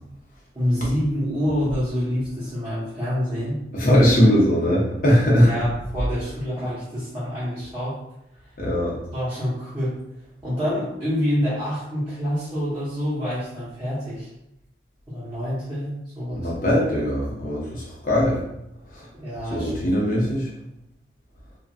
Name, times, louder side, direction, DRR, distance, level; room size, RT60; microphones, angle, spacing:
voice 1, 0.5-3.6 5.4-7.9 9.1-9.9 10.4-14.3 15.1-16.5 19.2-19.9 20.1-20.3, equal, 15° right, -13 dB, 0.9 m, -27 dB
voice 2, 3.7-5.5 8.6-9.0 16.3-18.4 18.9-19.1 19.5-20.5, equal, 45° left, -5 dB, 0.7 m, -20 dB
2.9 x 2.5 x 2.5 m, 0.83 s
head